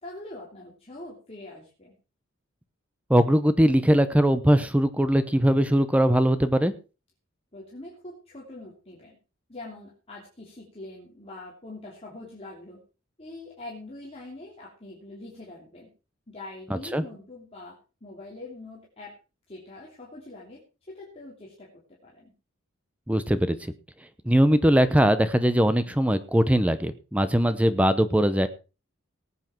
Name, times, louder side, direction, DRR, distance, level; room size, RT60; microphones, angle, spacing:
voice 1, 0.0-1.9 7.5-9.2 9.5-12.8 13.2-15.9 16.3-19.2 19.5-20.6 20.9-22.3, left 2 dB, 30° left, -4 dB, 3.1 m, -43 dB
voice 2, 3.1-6.7 16.7-17.0 23.1-23.6 24.2-28.5, equal, 5° right, 12 dB, 0.8 m, -21 dB
19.0 x 8.4 x 4.5 m, 0.33 s
head